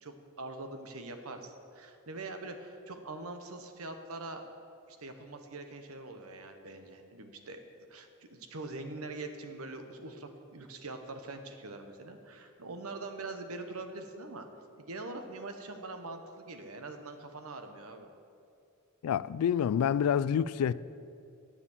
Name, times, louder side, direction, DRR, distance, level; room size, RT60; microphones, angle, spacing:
voice 1, 0.0-4.4 4.9-7.6 7.9-14.5 14.8-18.1, right 2 dB, 70° right, 1.0 m, -43 dB
voice 2, 19.0-20.7, left 8 dB, 80° left, 0.3 m, -27 dB
9.6 x 6.9 x 7.2 m
head